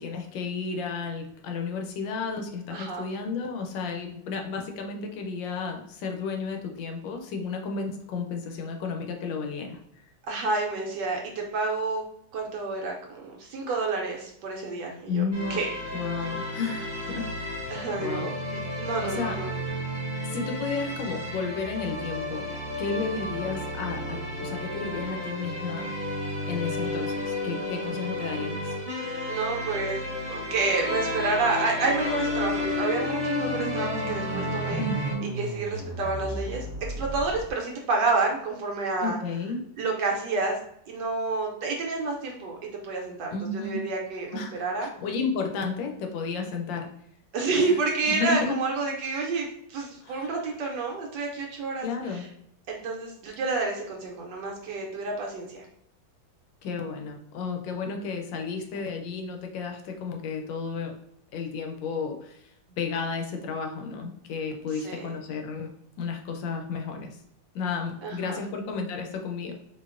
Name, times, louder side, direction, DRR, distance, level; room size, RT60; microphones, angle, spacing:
voice 1, 0.0-9.8 15.1-15.6 15.9-17.7 18.0-18.3 18.7-19.4 20.3-22.4 22.8-25.9 26.5-28.7 34.8-35.3 39.0-39.6 43.3-43.8 44.3-46.9 47.6-47.7 48.1-48.6 50.0-50.3 51.8-52.2 56.6-61.0 61.3-62.5 62.8-65.7 66.0-67.2 67.5-69.5, left 4 dB, 80° left, 3 dB, 1.3 m, -32 dB
voice 2, 2.7-3.1 10.2-12.0 12.3-15.2 15.5-15.7 17.7-18.3 18.8-19.5 29.3-34.8 35.4-36.7 37.0-39.2 39.8-40.6 40.9-42.6 42.8-43.4 43.6-44.9 47.3-52.2 52.7-55.7 64.7-65.1 68.0-68.4, right 3 dB, 75° right, 0 dB, 1.2 m, -29 dB
sound 1, 15.3-35.1, left 1 dB, 30° right, 1.1 m, -32 dB
sound 2, 30.6-37.5, right 1 dB, 15° right, 0.6 m, -36 dB
3.9 x 2.8 x 2.4 m, 0.73 s
omnidirectional pair, 2.0 m